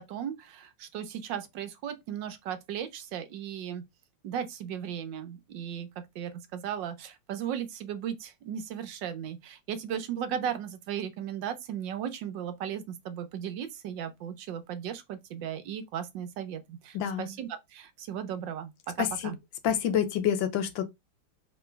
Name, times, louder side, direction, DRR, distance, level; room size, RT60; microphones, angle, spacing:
voice 1, 0.0-3.8 4.2-5.9 6.1-19.4, right 9 dB, 70° right, 1.3 m, -36 dB
voice 2, 16.9-17.3 19.0-19.3 19.6-20.9, left 9 dB, 75° left, 1.4 m, -28 dB
3.8 x 3.0 x 4.5 m
omnidirectional pair, 2.2 m